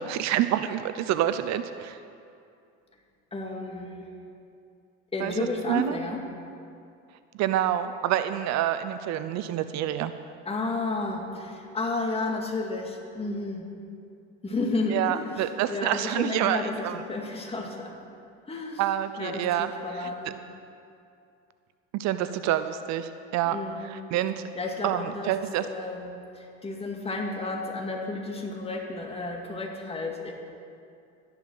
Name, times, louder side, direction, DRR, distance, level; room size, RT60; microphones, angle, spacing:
voice 1, 0.0-2.0 5.2-5.3 5.7-6.0 7.4-10.1 14.9-17.0 18.8-19.7 19.9-20.1 21.9-23.6 23.8-24.4 24.8-25.7, right 11 dB, 55° right, 11 dB, 0.6 m, -27 dB
voice 2, 3.3-4.1 5.1-6.3 10.5-13.7 14.4-17.9 18.5-18.8 19.2-20.4 23.5-23.9 24.6-25.3 25.6-30.3, left 2 dB, 20° left, 1 dB, 2.0 m, -32 dB
13.0 x 10.5 x 6.2 m, 2.5 s
supercardioid pair, 115°, 32 cm